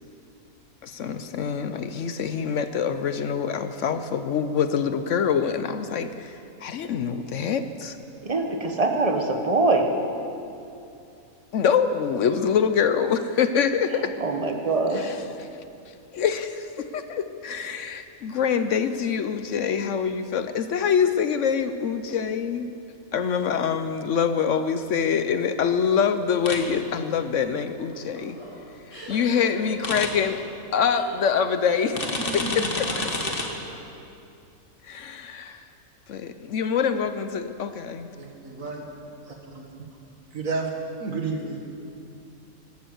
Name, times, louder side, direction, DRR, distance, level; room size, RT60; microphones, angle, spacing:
voice 1, 0.8-8.0 11.5-14.1 14.9-15.2 16.1-22.7 23.1-28.4 29.1-30.4 30.7-32.1 32.3-33.3 34.9-35.6 36.1-38.1, left 7 dB, 65° left, 10 dB, 0.9 m, -25 dB
voice 2, 8.2-9.9 14.2-15.1, right 3 dB, 25° right, 4 dB, 1.3 m, -23 dB
sound 1, 26.5-26.6 29.8-30.1 32.0-33.4, left 2 dB, 40° left, 1.6 m, -29 dB
sound 2, 27.9-34.0, right 1 dB, 20° left, 4.6 m, -37 dB
voice 3, 38.2-38.8 39.3-39.7 40.3-40.7 41.0-41.6, right 4 dB, 70° right, 2 dB, 2.1 m, -31 dB
14.0 x 12.5 x 7.8 m, 2.7 s
omnidirectional pair, 1.5 m